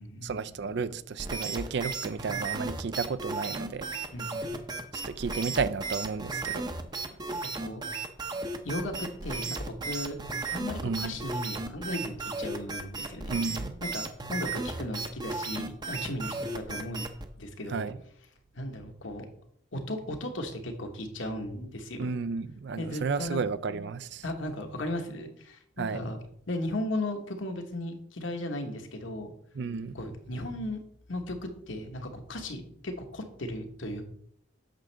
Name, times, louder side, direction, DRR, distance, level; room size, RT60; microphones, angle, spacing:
voice 1, 0.2-4.0 4.9-6.7 10.8-11.2 13.3-13.8 17.7-18.0 22.0-24.2 25.8-26.1 29.5-29.9, right 5 dB, 60° right, 0.4 m, -32 dB
sound 1, 1.2-17.3, right 3 dB, 20° right, 0.6 m, -35 dB
voice 2, 4.1-4.7 5.0-5.1 7.5-7.8 8.6-10.2 10.5-13.4 13.9-17.0 17.4-17.9 18.5-19.2 19.7-22.1 22.8-23.4 24.2-26.2 26.5-29.3 29.9-30.8 31.1-34.1, left 1 dB, 70° left, 1.3 m, -36 dB
9.0 x 6.3 x 3.4 m
head